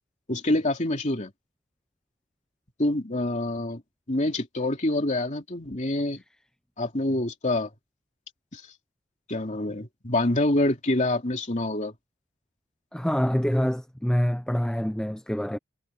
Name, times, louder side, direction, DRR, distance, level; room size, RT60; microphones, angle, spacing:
voice 1, 0.3-1.3 2.8-3.8 4.1-6.2 6.8-7.7 8.5-8.6 9.3-11.9, left 1 dB, 35° left, 2.9 m, -26 dB
voice 2, 12.9-15.6, equal, 5° left, 0.5 m, -26 dB
head